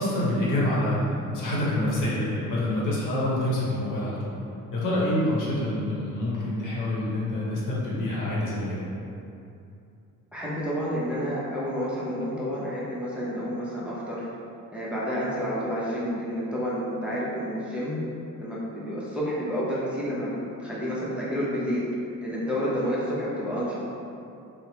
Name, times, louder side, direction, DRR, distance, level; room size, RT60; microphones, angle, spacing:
voice 1, 0.0-4.4 4.7-8.9, left 1 dB, 70° left, -6 dB, 0.9 m, -26 dB
voice 2, 10.3-14.3 14.7-18.0 18.4-20.3 20.6-21.8 22.2-23.8, equal, 5° right, -8 dB, 0.6 m, -29 dB
3.0 x 2.0 x 2.8 m, 2.6 s
cardioid pair, 90°, 32 cm